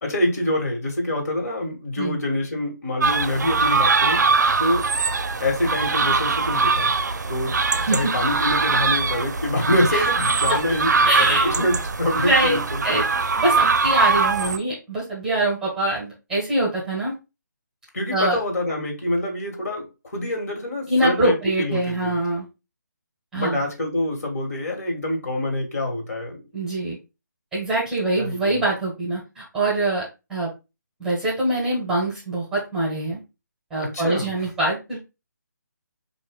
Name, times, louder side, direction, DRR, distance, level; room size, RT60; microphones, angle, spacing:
voice 1, 0.0-4.2 4.6-4.9 5.4-6.9 7.3-7.6 7.9-12.8 17.9-22.2 23.3-26.4 28.1-28.6 33.8-34.3, left 1 dB, 60° left, 1.7 m, -26 dB
sound 1, 3.0-14.6, right 4 dB, 65° right, 0.5 m, -22 dB
voice 2, 11.0-11.5 12.2-12.6 12.8-13.1 13.4-17.1 18.1-18.4 20.9-22.5 23.3-23.6 26.5-27.0 27.5-30.0 30.3-30.5 31.0-33.2 33.7-35.1, right 2 dB, 5° right, 1.2 m, -24 dB
4.1 x 2.6 x 3.5 m
figure-of-eight pair, 155°, 10 cm